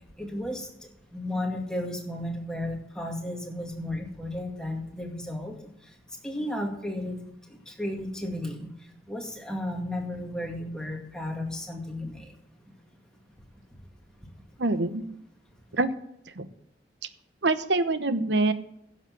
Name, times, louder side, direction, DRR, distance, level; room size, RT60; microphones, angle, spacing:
voice 1, 0.2-0.7 1.1-5.6 6.2-7.2 7.7-8.7 9.1-12.3, left 1 dB, 5° left, 0 dB, 2.1 m, -33 dB
voice 2, 14.6-15.1 15.7-15.9 16.4-16.5 17.4-18.5, right 2 dB, 80° right, 11 dB, 1.0 m, -25 dB
10.5 x 7.3 x 7.5 m, 0.76 s
head